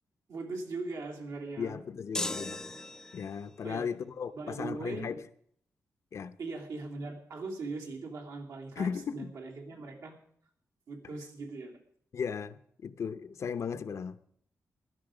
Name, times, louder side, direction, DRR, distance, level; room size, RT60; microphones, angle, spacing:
voice 1, 0.3-1.8 3.6-3.9 4.3-5.1 6.4-10.2 10.9-11.7, right 3 dB, 75° right, 2.9 m, -40 dB
voice 2, 1.6-2.6 3.1-5.2 6.1-6.4 8.8-9.3 12.1-14.2, left 6 dB, 60° left, 0.8 m, -36 dB
sound 1, 2.1-3.5, left 2 dB, 10° left, 0.6 m, -37 dB
15.5 x 12.5 x 5.1 m
wide cardioid pair, 115°, 6 cm